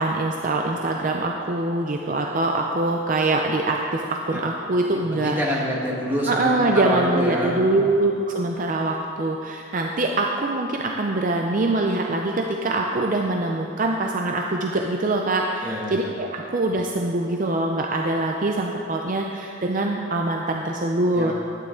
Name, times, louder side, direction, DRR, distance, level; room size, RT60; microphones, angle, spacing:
voice 1, 0.0-5.4 6.3-21.3, right 2 dB, 40° right, 1 dB, 0.5 m, -24 dB
voice 2, 5.0-7.9 15.6-16.1 21.1-21.3, equal, 10° right, -4 dB, 1.4 m, -27 dB
12.0 x 9.4 x 3.8 m, 2.7 s
head